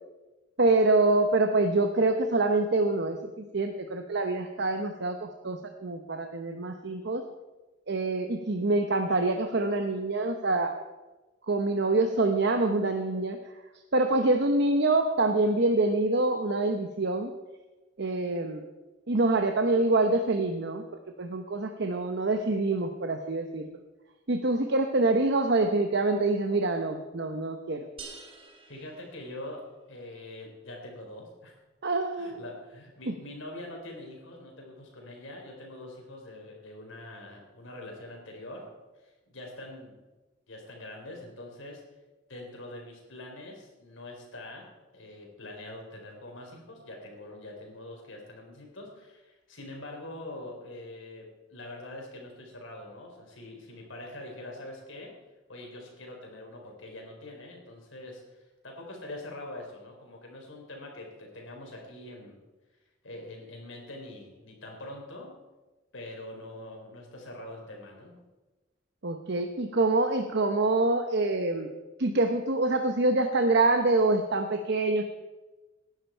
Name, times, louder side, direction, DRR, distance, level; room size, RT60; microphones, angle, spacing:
voice 1, 0.6-7.2 7.9-10.7 11.5-13.4 13.9-17.3 18.0-18.7 19.1-20.8 21.2-23.7 24.3-27.9 31.8-32.4 33.1-33.2 69.0-71.7 72.0-75.0, right 2 dB, 60° right, 6 dB, 0.9 m, -26 dB
sound 1, 28.0-29.8, right 4 dB, 30° right, 1.9 m, -48 dB
voice 2, 28.7-29.6 29.9-31.5 32.2-38.6 39.0-39.9 40.5-41.8 42.3-44.7 44.9-55.1 55.5-62.4 63.0-65.3 65.9-68.2, left 1 dB, 85° left, 1 dB, 4.2 m, -44 dB
18.5 x 11.0 x 4.5 m, 1.2 s
head